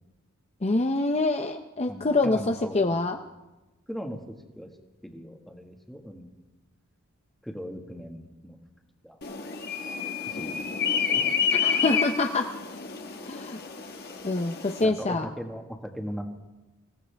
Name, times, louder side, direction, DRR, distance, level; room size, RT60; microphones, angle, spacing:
voice 1, 0.6-3.2 11.5-12.5 13.3-13.6 14.2-15.3, left 2 dB, 30° left, 6 dB, 0.6 m, -25 dB
voice 2, 1.9-3.0 3.9-4.2 4.5-4.7 5.0-6.3 7.4-8.6 9.0-9.2 10.3-10.5 10.9-11.2 14.8-16.2, equal, ahead, 3 dB, 1.6 m, -38 dB
sound 1, 9.2-14.8, left 7 dB, 50° left, 1.4 m, -29 dB
25.5 x 16.0 x 3.4 m, 1.1 s
head